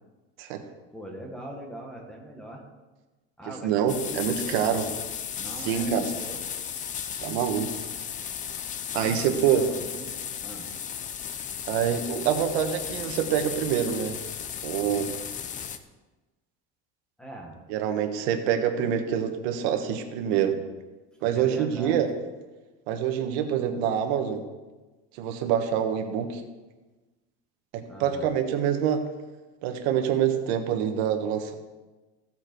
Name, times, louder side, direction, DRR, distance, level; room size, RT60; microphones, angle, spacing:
voice 1, 0.9-2.6 3.4-4.9 5.3-6.4 8.9-10.1 10.4-10.7 17.2-17.6 21.3-22.0 27.9-28.3, right 1 dB, 5° left, 0 dB, 1.6 m, -41 dB
voice 2, 3.6-4.9 5.6-6.1 7.2-7.8 8.9-9.6 11.7-14.2 14.6-15.1 17.7-20.6 21.2-22.1 22.9-24.4 25.2-26.4 27.7-29.0 29.6-31.5, right 9 dB, 85° right, 5 dB, 1.4 m, -26 dB
sound 1, 3.9-15.8, left 8 dB, 25° left, 0.6 m, -35 dB
15.5 x 7.7 x 4.6 m, 1.2 s
cardioid pair, 165°, 30 cm